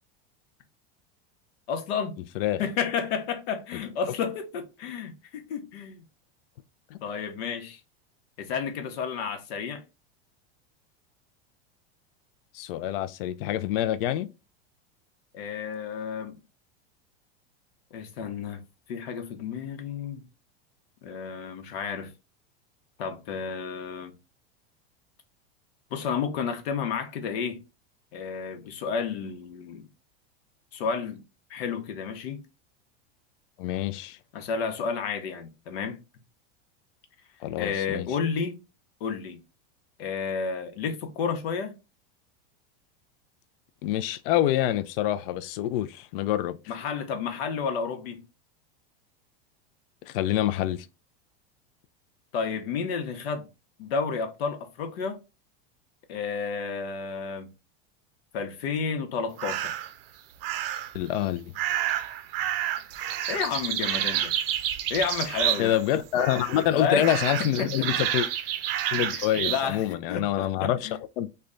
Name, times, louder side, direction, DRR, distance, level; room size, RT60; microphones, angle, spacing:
voice 1, 1.7-2.2 2.6-6.0 7.0-7.8 8.4-9.8 15.3-16.4 17.9-18.6 18.9-20.2 21.0-22.1 23.0-24.1 25.9-27.6 28.1-29.8 30.7-31.2 31.5-32.4 34.3-36.0 37.6-38.6 39.0-39.4 40.0-41.8 46.7-48.2 52.3-53.5 53.8-55.2 56.1-57.5 58.3-59.7 63.3-64.3 64.9-65.7 66.7-67.1 67.6-67.9 69.1-71.0, left 6 dB, 85° left, 0.9 m, -31 dB
voice 2, 12.5-14.3 33.6-34.2 37.4-38.1 43.8-46.6 50.1-50.9 60.9-61.5 65.6-68.3 68.9-70.9 71.2-71.3, left 12 dB, 65° left, 0.5 m, -26 dB
sound 1, 59.4-59.9 60.4-61.0 61.5-65.9 66.1-66.7 67.0-69.6, right 11 dB, 70° right, 0.5 m, -29 dB
3.2 x 2.2 x 3.7 m
supercardioid pair, 165°, 30 cm